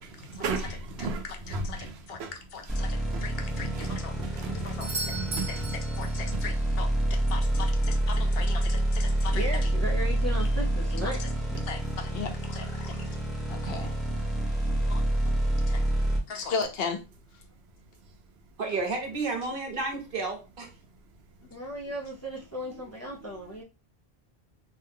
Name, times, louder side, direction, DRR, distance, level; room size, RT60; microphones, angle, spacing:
voice 1, 0.0-2.3 3.1-5.8 6.3-6.4 13.7-13.8, right 3 dB, 80° right, 0.9 m, -36 dB
voice 2, 1.5-2.2 2.5-4.1 4.6-5.6 6.0-6.9 7.3-9.7 11.2-11.3 11.6-13.0 13.5-13.9 14.9-15.0 15.7-15.8 16.3-17.0, left 5 dB, 70° left, 0.8 m, -37 dB
sound 1, 2.7-16.2, right 1 dB, ahead, 1.0 m, -28 dB
Doorbell, 4.8-6.6 10.7-10.8, right 3 dB, 40° right, 0.5 m, -37 dB
voice 3, 9.3-11.6 21.5-23.6, equal, 20° left, 0.5 m, -36 dB
voice 4, 18.6-20.7, right 3 dB, 60° right, 1.1 m, -31 dB
2.6 x 2.2 x 3.4 m
omnidirectional pair, 1.1 m